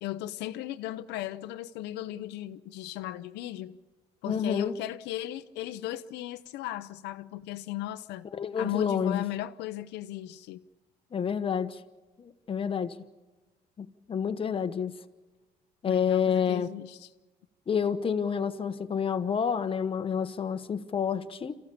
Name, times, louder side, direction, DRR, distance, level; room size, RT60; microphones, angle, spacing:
voice 1, 0.0-3.8 4.2-8.3 8.6-10.6 15.9-17.1, left 14 dB, 90° left, 0.7 m, -36 dB
voice 2, 4.2-4.8 8.3-9.2 11.1-11.8 12.2-13.0 13.8-15.0 15.8-16.7 17.7-21.6, left 7 dB, 30° left, 1.1 m, -29 dB
27.5 x 15.0 x 8.6 m
cardioid pair, 110°, 17 cm